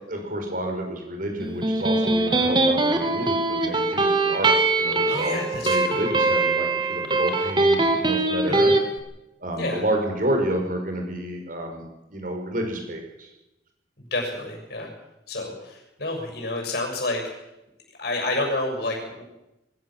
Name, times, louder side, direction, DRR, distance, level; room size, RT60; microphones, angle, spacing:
voice 1, 0.0-4.5 4.8-5.4 5.6-8.7 9.4-13.3, right 1 dB, 50° right, 3 dB, 5.4 m, -29 dB
Electric guitar, 1.4-8.8, right 2 dB, 25° right, 2.4 m, -22 dB
voice 2, 5.1-6.0 8.5-8.7 9.6-9.8 14.0-14.9 15.3-17.4 18.0-19.2, left 2 dB, 60° left, 1 dB, 6.8 m, -29 dB
22.0 x 16.0 x 7.5 m, 0.91 s
head